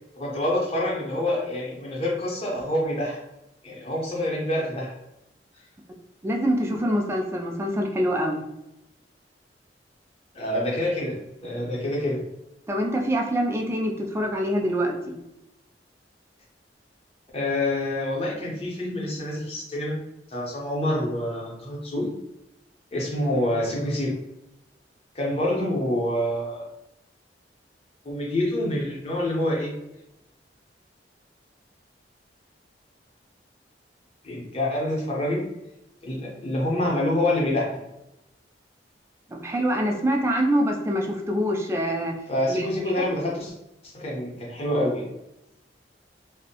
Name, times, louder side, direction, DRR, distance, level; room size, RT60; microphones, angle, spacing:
voice 1, 0.2-3.2 3.6-4.9 10.3-12.2 17.3-20.0 20.3-22.1 22.9-24.2 25.1-26.6 28.0-29.7 34.2-35.4 36.0-37.7 42.3-43.5 43.8-45.0, left 1 dB, 35° left, -3 dB, 0.7 m, -26 dB
voice 2, 6.2-8.4 12.7-15.1 39.3-42.1 42.5-42.7, equal, 15° right, 1 dB, 0.3 m, -25 dB
2.6 x 2.0 x 2.8 m, 0.87 s
head